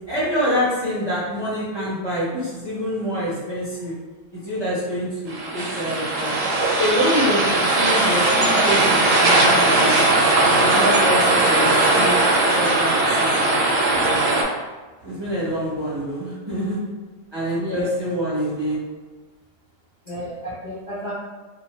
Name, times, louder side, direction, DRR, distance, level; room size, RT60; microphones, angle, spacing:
voice 1, 0.1-3.9 4.3-6.3 6.8-9.9 10.4-12.2 12.5-13.6 13.9-14.2 15.0-16.8 17.3-18.8, equal, 25° right, -10 dB, 0.7 m, -26 dB
sound 1, 5.3-14.4, right 2 dB, 60° right, 0.7 m, -18 dB
voice 2, 17.5-17.9 20.1-21.1, equal, 45° left, -9 dB, 0.6 m, -31 dB
2.7 x 2.1 x 3.0 m, 1.3 s
omnidirectional pair, 1.3 m